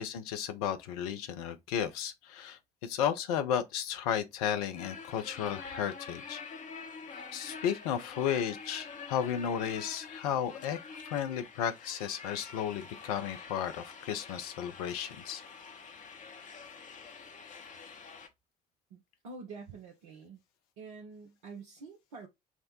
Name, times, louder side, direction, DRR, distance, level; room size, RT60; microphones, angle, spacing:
voice 1, 0.0-6.4 7.3-10.8 11.0-15.4, left 9 dB, 70° left, 0.6 m, -33 dB
sound 1, 4.8-18.3, left 5 dB, 40° left, 0.8 m, -47 dB
voice 2, 18.9-20.4 20.8-22.3, right 4 dB, 70° right, 0.7 m, -47 dB
5.7 x 2.1 x 2.8 m
figure-of-eight pair, 45°, 20 cm